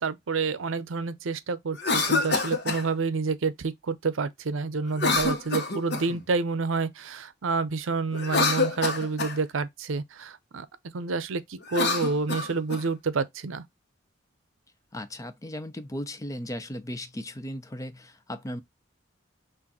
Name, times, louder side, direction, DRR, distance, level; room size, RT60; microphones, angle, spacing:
voice 1, 0.0-10.7 10.9-13.6, right 4 dB, 90° right, 0.6 m, -29 dB
Cough, 1.7-2.8 4.9-6.2 8.1-9.4 11.6-12.8, left 3 dB, 60° left, 1.1 m, -26 dB
voice 2, 14.9-18.6, left 1 dB, 15° left, 0.6 m, -36 dB
6.2 x 2.5 x 2.8 m
head